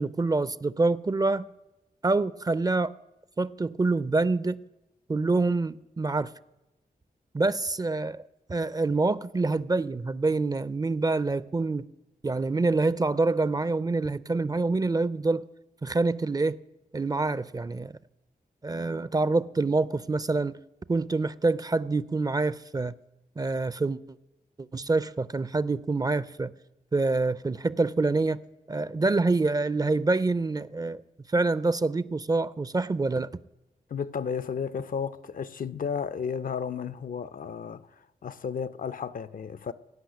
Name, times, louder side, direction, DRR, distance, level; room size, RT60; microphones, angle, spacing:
voice 1, 0.0-1.5 2.0-2.9 3.4-4.6 5.1-6.3 7.3-8.2 8.5-11.9 12.2-15.4 15.8-16.6 16.9-17.9 18.6-20.6 20.9-22.9 23.4-24.0 24.6-26.5 26.9-28.4 28.7-31.0 31.3-33.3, right 3 dB, 25° right, 0.4 m, -26 dB
voice 2, 33.9-37.9 38.2-39.7, left 6 dB, 65° left, 0.5 m, -33 dB
16.5 x 5.6 x 9.2 m
wide cardioid pair, 80°, 15 cm